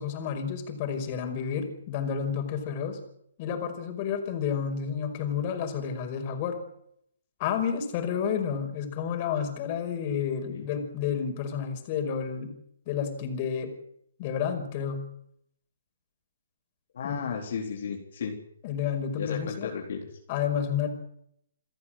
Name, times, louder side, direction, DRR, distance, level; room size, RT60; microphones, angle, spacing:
voice 1, 0.0-3.0 3.4-6.6 7.4-12.5 12.9-13.7 14.2-15.1 17.0-17.2 18.6-19.7 20.3-20.9, left 7 dB, 35° left, 6 dB, 5.4 m, -30 dB
voice 2, 16.9-18.4 19.2-20.2, left 6 dB, 60° left, 0 dB, 3.8 m, -34 dB
28.5 x 13.5 x 7.7 m, 0.73 s
hypercardioid pair, 140°, 0 cm